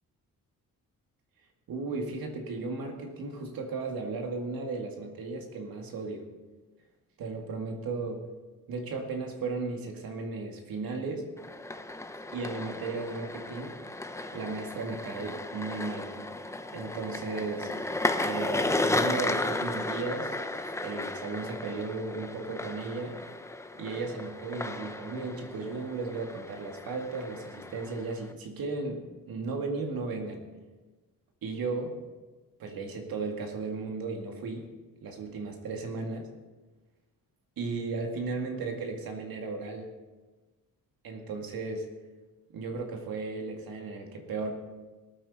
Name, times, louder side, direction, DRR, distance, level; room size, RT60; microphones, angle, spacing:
voice 1, 1.7-6.3 7.2-8.2 8.7-11.3 12.3-13.7 14.3-16.1 16.5-17.7 18.2-20.4 20.8-23.2 23.7-30.5 31.4-32.0 32.6-34.7 35.0-36.3 37.6-39.9 41.0-41.9 42.5-44.5, right 3 dB, 90° right, 3 dB, 2.1 m, -35 dB
sound 1, 11.4-28.3, left 2 dB, 10° left, 0.6 m, -34 dB
19.5 x 9.1 x 4.1 m, 1.2 s
wide cardioid pair, 135°, 34 cm